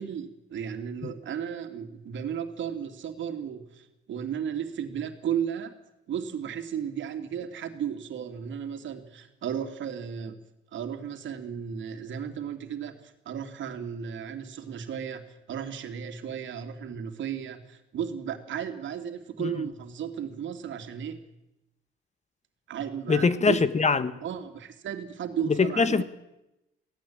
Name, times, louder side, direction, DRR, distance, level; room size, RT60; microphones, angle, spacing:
voice 1, 0.0-5.7 6.1-10.3 10.7-21.2 22.7-23.6 24.2-26.0, right 8 dB, 70° right, 6 dB, 2.9 m, -34 dB
voice 2, 23.1-24.1 25.5-26.0, left 4 dB, 35° left, 13 dB, 1.6 m, -23 dB
23.5 x 17.0 x 8.9 m, 0.94 s
cardioid pair, 90°, 20 cm